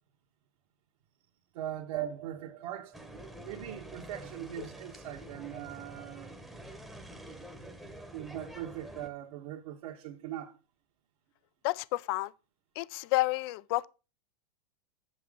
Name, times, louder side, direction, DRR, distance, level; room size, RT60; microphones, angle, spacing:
voice 1, 1.5-2.9 3.4-6.4 7.8-10.6, right 12 dB, 60° right, 1.4 m, -41 dB
sound 1, 1.9-4.9, right 12 dB, 30° right, 0.9 m, -43 dB
sound 2, 2.9-9.1, right 1 dB, ahead, 0.9 m, -47 dB
voice 2, 11.6-12.3 12.8-13.9, left 20 dB, 40° left, 0.4 m, -30 dB
8.0 x 7.3 x 3.8 m
supercardioid pair, 150°, 19 cm